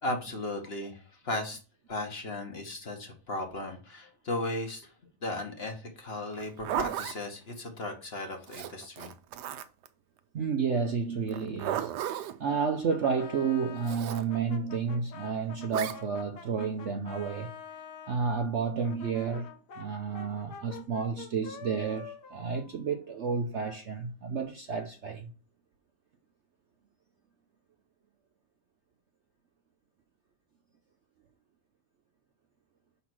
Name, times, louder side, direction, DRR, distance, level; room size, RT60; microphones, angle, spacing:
voice 1, 0.0-1.6 1.9-4.9 5.2-9.1, left 2 dB, 40° left, 1.3 m, -36 dB
Zipper (clothing), 6.3-7.2 8.5-9.9 11.3-12.4 13.8-14.2 15.7-16.0, right 11 dB, 85° right, 1.2 m, -34 dB
voice 2, 10.3-12.0 12.4-17.5 18.1-19.5 19.8-25.3, right 5 dB, 60° right, 0.8 m, -31 dB
Brass instrument, 12.4-18.2 18.8-23.5, left 6 dB, 75° left, 1.6 m, -47 dB
5.7 x 4.1 x 6.1 m
omnidirectional pair, 1.8 m